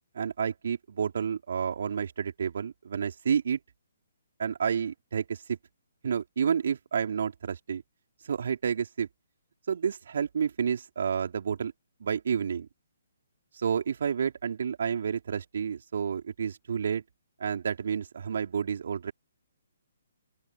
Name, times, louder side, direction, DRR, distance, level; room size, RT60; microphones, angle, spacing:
voice 1, 0.1-3.6 4.4-5.6 6.0-7.8 8.2-9.1 9.7-11.7 12.0-12.7 13.5-17.0 17.4-19.1, right 7 dB, 60° right, 4.1 m, -30 dB
open air
figure-of-eight pair, 140°, 0 cm